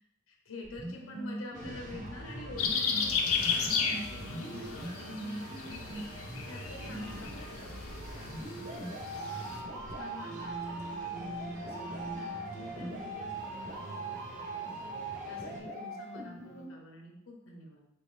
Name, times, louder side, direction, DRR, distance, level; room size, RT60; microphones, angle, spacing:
voice 1, 0.3-6.1 6.5-8.0 9.9-17.9, left 2 dB, 65° left, 0 dB, 0.9 m, -48 dB
sound 1, 0.6-16.6, right 2 dB, 55° right, 1.2 m, -42 dB
sound 2, 1.5-15.6, right 2 dB, 35° right, 0.6 m, -45 dB
sound 3, 2.6-9.6, left 6 dB, 85° left, 0.5 m, -34 dB
4.7 x 2.8 x 3.2 m, 0.82 s
head